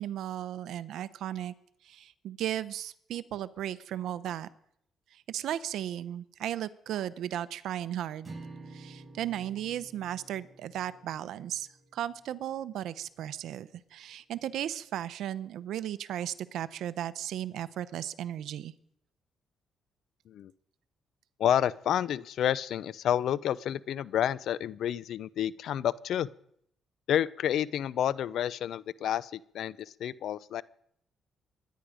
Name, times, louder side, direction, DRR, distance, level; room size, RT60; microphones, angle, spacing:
voice 1, 0.0-1.5 1.8-4.5 5.1-8.3 8.7-18.7, right 11 dB, 80° right, 15 dB, 0.7 m, -36 dB
sound 1, 8.2-12.6, right 2 dB, 25° right, 6.4 m, -50 dB
voice 2, 21.4-26.3 27.1-30.6, left 10 dB, 70° left, 20 dB, 0.5 m, -29 dB
23.5 x 10.5 x 5.0 m, 0.71 s
cardioid pair, 90°, 0 cm